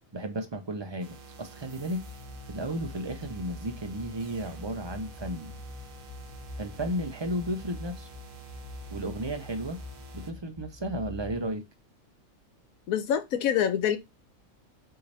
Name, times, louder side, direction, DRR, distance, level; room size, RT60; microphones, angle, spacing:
voice 1, 0.1-2.1 2.5-5.6 6.6-8.1 8.9-9.8 10.1-11.6, right 1 dB, 40° right, 0.4 m, -34 dB
sound 1, 1.0-10.3, right 3 dB, 80° right, 1.4 m, -49 dB
sound 2, 1.9-11.5, left 2 dB, 45° left, 0.5 m, -44 dB
voice 2, 12.9-14.0, left 9 dB, 90° left, 1.1 m, -25 dB
5.6 x 2.7 x 3.3 m
omnidirectional pair, 1.4 m